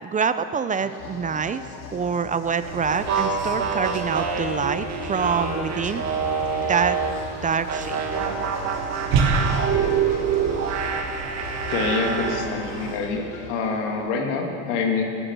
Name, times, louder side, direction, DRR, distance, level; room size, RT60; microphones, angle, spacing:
voice 1, 0.0-1.6 1.9-6.0 6.7-7.0 7.4-8.0, right 6 dB, 25° right, 12 dB, 0.4 m, -25 dB
sound 1, 0.7-14.4, left 4 dB, 65° left, 1.6 m, -40 dB
sound 2, 2.6-12.9, right 3 dB, 70° right, 2.4 m, -31 dB
sound 3, 2.9-7.2 7.7-12.5, right 6 dB, 50° right, 1.7 m, -26 dB
voice 2, 11.7-13.2 13.5-15.0, left 4 dB, 90° left, 2 dB, 2.0 m, -26 dB
13.5 x 10.0 x 6.7 m, 2.6 s
supercardioid pair, 105°, 34 cm